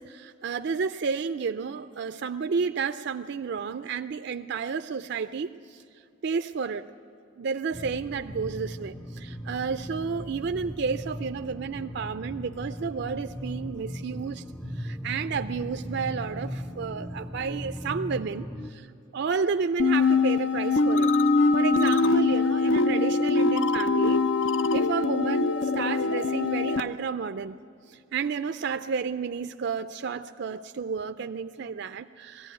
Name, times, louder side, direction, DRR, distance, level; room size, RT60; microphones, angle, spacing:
voice 1, 0.0-5.8 6.2-6.9 7.4-14.4 14.8-18.9 19.1-21.1 21.5-24.2 24.7-27.6 27.9-32.5, right 5 dB, 60° right, 9 dB, 0.4 m, -31 dB
sound 1, 7.7-18.7, equal, ahead, 0.5 m, -38 dB
sound 2, 19.8-26.8, left 3 dB, 75° left, 0.6 m, -23 dB
20.0 x 14.5 x 9.2 m, 2.5 s
head